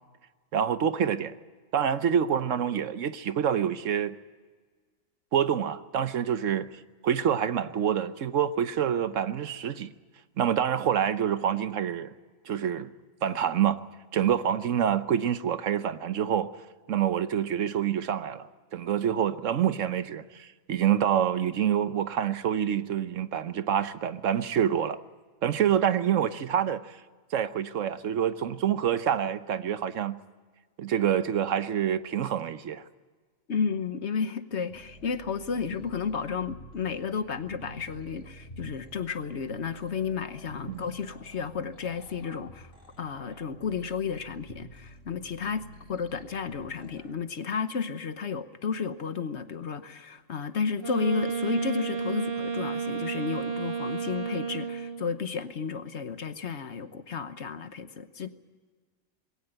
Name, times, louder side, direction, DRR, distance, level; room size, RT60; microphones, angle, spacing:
voice 1, 0.5-1.3 1.7-4.2 5.3-6.7 7.0-9.9 10.4-12.1 12.5-12.9 13.2-13.8 14.1-16.5 16.9-25.0 25.4-27.0 27.3-30.2 30.8-32.8 40.7-40.8, right 9 dB, 70° right, 1.2 m, -27 dB
voice 2, 33.5-42.7 43.0-45.6 45.9-58.3, left 6 dB, 60° left, 1.3 m, -32 dB
sound 1, 34.7-47.2, right 1 dB, 40° left, 3.3 m, -49 dB
Wind instrument woodwind instrument, 50.8-55.1, right 6 dB, 45° right, 2.0 m, -32 dB
21.0 x 17.5 x 8.9 m
omnidirectional pair, 1.4 m